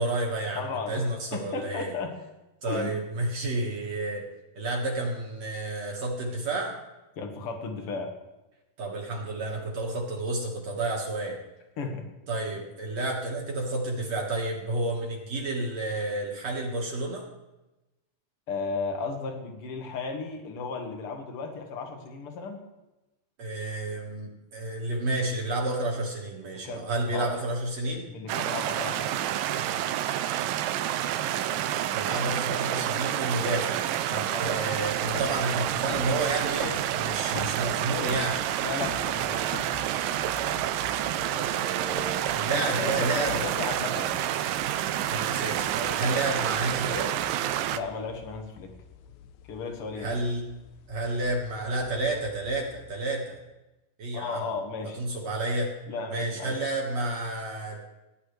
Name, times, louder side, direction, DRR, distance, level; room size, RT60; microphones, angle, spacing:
voice 1, 0.0-0.6 0.9-1.9 2.6-4.2 4.6-6.7 8.8-11.4 12.3-17.3 23.4-28.1 31.9-33.8 34.1-38.4 40.3-40.6 41.2-43.4 45.1-47.1 50.0-50.4 50.9-53.4 54.0-54.4 55.0-55.7 56.1-57.8, right 2 dB, 55° right, -2 dB, 2.6 m, -30 dB
voice 2, 0.6-1.0 1.3-2.2 2.7-3.0 7.2-8.1 11.8-12.0 18.5-22.6 26.5-26.9 27.1-27.3 28.1-29.3 32.1-32.2 32.5-33.0 34.3-34.5 38.6-39.5 42.5-44.2 47.7-48.7 49.5-50.1 54.1-55.0 55.9-56.6, left 4 dB, 50° left, 3 dB, 2.0 m, -35 dB
sound 1, 28.3-47.8, right 12 dB, 90° right, 2.4 m, -29 dB
sound 2, 34.8-53.0, left 9 dB, 75° left, 1.9 m, -47 dB
18.5 x 11.0 x 3.2 m, 1.0 s
omnidirectional pair, 3.9 m